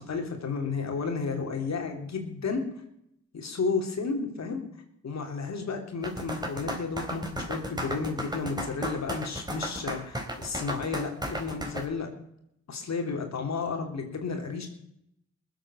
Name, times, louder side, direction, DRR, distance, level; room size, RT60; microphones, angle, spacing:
voice 1, 0.0-2.7 3.3-4.6 5.0-12.1 12.7-14.7, left 4 dB, 65° left, 4 dB, 3.2 m, -32 dB
sound 1, 6.0-11.9, equal, 15° right, 4.1 m, -34 dB
20.0 x 8.1 x 7.2 m, 0.76 s
supercardioid pair, 50°, 29 cm